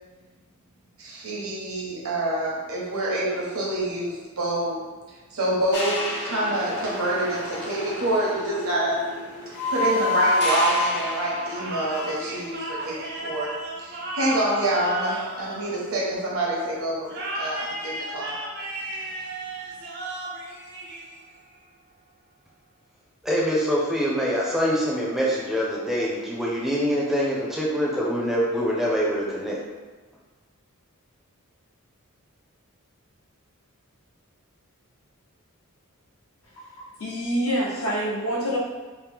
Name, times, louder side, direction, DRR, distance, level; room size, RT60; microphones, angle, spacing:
voice 1, 1.0-4.8 5.3-9.0 9.4-13.5 13.8-18.3, right 1 dB, 70° right, -5 dB, 0.9 m, -27 dB
sound 1, 5.7-12.1 12.3-12.5, left 1 dB, 50° left, 0.6 m, -28 dB
sound 2, 11.5-16.3 17.1-21.5, right 2 dB, 50° right, 0.5 m, -34 dB
voice 2, 23.2-29.6, equal, ahead, -5 dB, 0.5 m, -24 dB
voice 3, 36.5-38.6, equal, 75° left, -5 dB, 0.8 m, -27 dB
2.9 x 2.1 x 3.4 m, 1.3 s
head